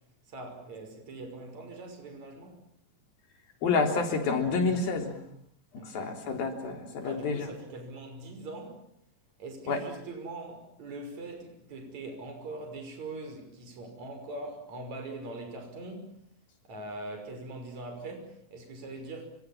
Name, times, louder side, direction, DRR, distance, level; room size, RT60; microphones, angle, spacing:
voice 1, 0.3-2.6 5.8-6.1 7.0-8.8 9.4-16.3 16.6-19.3, right 2 dB, 50° right, 7.1 m, -42 dB
voice 2, 3.6-5.2 5.9-7.5 9.7-9.8, left 4 dB, 90° left, 5.5 m, -28 dB
30.0 x 27.0 x 7.4 m
omnidirectional pair, 4.1 m